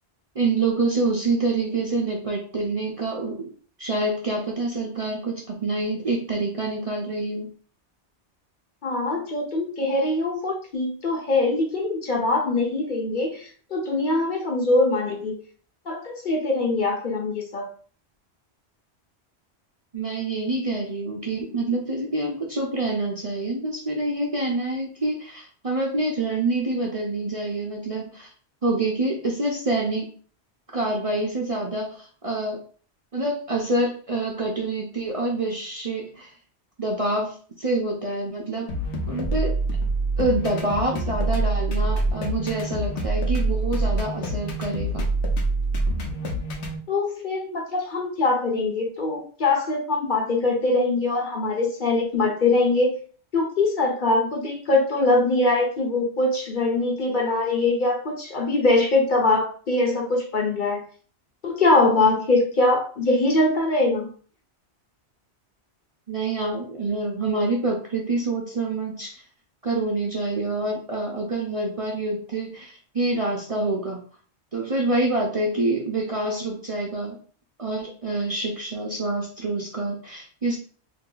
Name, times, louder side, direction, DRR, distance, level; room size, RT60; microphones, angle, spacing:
voice 1, 0.3-3.5 3.8-7.5 19.9-28.3 28.6-30.1 30.7-32.6 33.1-36.3 36.8-38.7 39.1-39.6 40.2-45.1 66.1-69.2 69.6-74.0 74.5-77.2 77.6-80.6, right 2 dB, 40° right, -2 dB, 0.6 m, -26 dB
voice 2, 8.8-13.5 13.7-15.4 15.9-17.7 46.9-53.0 53.3-60.8 61.4-64.1, left 2 dB, 50° left, 1 dB, 0.9 m, -22 dB
sound 1, 38.7-46.8, right 2 dB, 80° left, 1.1 m, -25 dB
2.8 x 2.8 x 3.8 m, 0.42 s
omnidirectional pair, 1.1 m